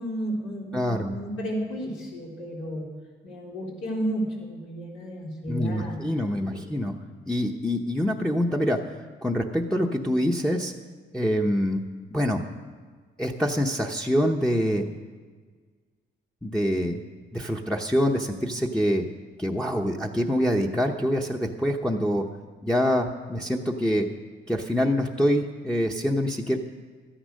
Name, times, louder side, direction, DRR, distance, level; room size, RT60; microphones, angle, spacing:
voice 1, 0.0-2.8 3.2-5.9 6.5-6.6, equal, 90° left, -4 dB, 3.9 m, -32 dB
voice 2, 0.7-1.1 5.5-6.9 7.3-8.9 9.2-10.7 11.1-11.8 12.1-12.4 13.2-14.9 16.4-17.0 17.3-19.0 19.4-22.3 22.6-24.1 24.5-26.6, equal, 5° left, -1 dB, 0.8 m, -25 dB
13.0 x 10.0 x 6.4 m, 1.5 s
cardioid pair, 90°, 20 cm